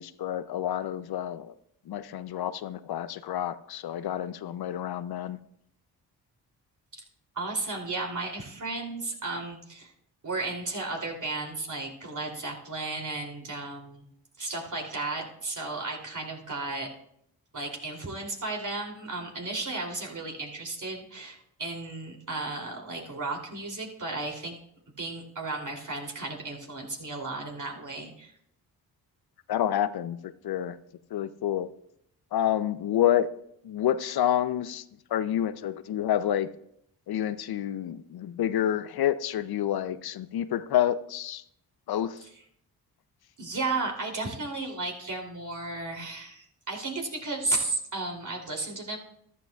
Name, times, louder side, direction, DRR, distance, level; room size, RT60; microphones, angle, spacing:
voice 1, 0.0-1.5 1.9-5.4 29.5-30.8 31.1-31.7 32.3-33.3 33.6-34.8 35.1-36.5 37.1-41.4 41.9-42.2, left 11 dB, 60° left, 14 dB, 0.6 m, -28 dB
voice 2, 7.3-9.9 10.2-14.0 14.4-16.9 17.5-24.6 25.0-28.3 43.4-49.0, right 3 dB, 45° right, 0 dB, 3.0 m, -34 dB
14.0 x 11.5 x 2.3 m, 0.74 s
supercardioid pair, 50°, 43 cm